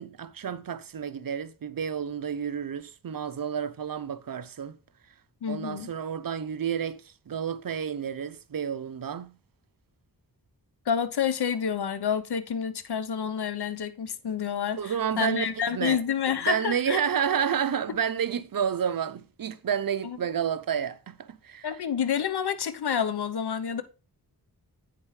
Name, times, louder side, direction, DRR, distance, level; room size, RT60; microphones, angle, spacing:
voice 1, 0.0-4.8 5.5-9.4 14.8-16.0 16.4-21.7, right 8 dB, 60° right, 0.8 m, -30 dB
voice 2, 5.4-5.9 10.9-17.0 20.0-20.2 21.6-23.8, left 7 dB, 75° left, 1.0 m, -29 dB
9.0 x 6.9 x 3.2 m
cardioid pair, 70°, 40 cm